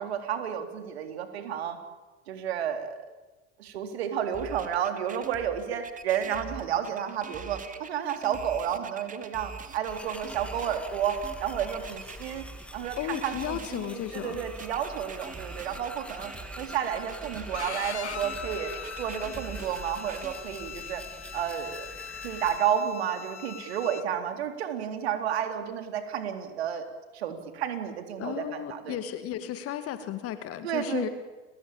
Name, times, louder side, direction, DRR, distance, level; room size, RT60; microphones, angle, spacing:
voice 1, 0.0-1.8 2.3-3.0 3.6-12.5 12.7-21.0 21.3-21.9 22.2-26.9 27.1-29.0 30.6-31.1, right 9 dB, 65° right, 7 dB, 3.7 m, -31 dB
sound 1, 4.3-20.3, right 5 dB, 25° right, 2.5 m, -44 dB
sound 2, 9.9-22.6, left 1 dB, 5° left, 2.4 m, -45 dB
voice 2, 13.0-14.4 28.2-31.1, left 11 dB, 45° left, 10 dB, 2.3 m, -34 dB
Bowed string instrument, 17.5-24.0, left 8 dB, 80° left, 1.1 m, -41 dB
30.0 x 22.5 x 8.9 m, 1.2 s
figure-of-eight pair, 75°, 33 cm